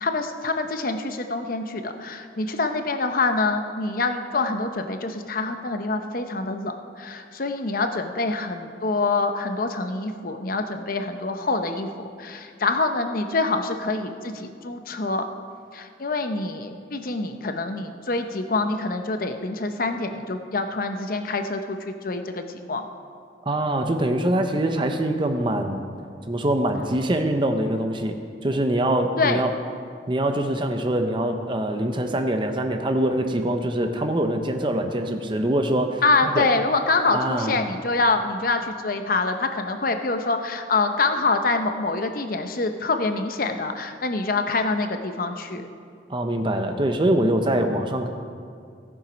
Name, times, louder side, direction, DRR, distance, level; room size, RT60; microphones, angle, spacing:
voice 1, 0.0-15.2 15.7-22.9 29.2-29.4 36.0-45.7, left 3 dB, 50° left, 7 dB, 0.8 m, -25 dB
voice 2, 23.5-25.9 26.2-28.2 28.4-29.5 30.1-36.5 37.1-37.6 46.1-48.1, right 1 dB, 25° right, 5 dB, 0.7 m, -24 dB
17.0 x 7.3 x 5.1 m, 2.3 s
head